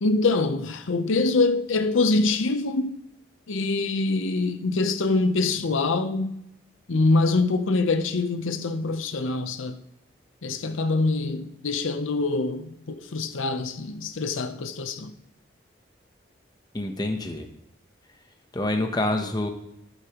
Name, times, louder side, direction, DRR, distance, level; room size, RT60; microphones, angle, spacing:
voice 1, 0.0-2.9 3.5-6.3 6.9-9.8 10.4-15.2, left 3 dB, 85° left, 0.7 m, -24 dB
voice 2, 16.7-17.5 18.5-19.5, left 1 dB, 20° left, 0.8 m, -26 dB
11.5 x 8.2 x 3.0 m
head